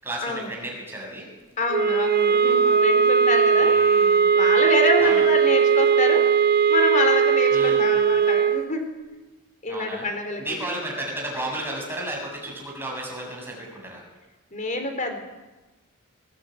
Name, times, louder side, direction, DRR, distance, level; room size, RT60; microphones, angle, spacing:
voice 1, 0.0-1.3 3.6-4.3 5.0-5.2 7.5-7.8 9.7-10.1 10.4-14.0, right 1 dB, 10° right, -1 dB, 7.2 m, -33 dB
voice 2, 1.6-3.8 4.3-6.3 6.7-8.9 9.6-10.4 14.5-15.2, left 2 dB, 35° left, 5 dB, 3.8 m, -26 dB
sound 1, 1.7-8.7, right 6 dB, 45° right, 0.9 m, -19 dB
21.0 x 16.5 x 9.2 m, 1.1 s
head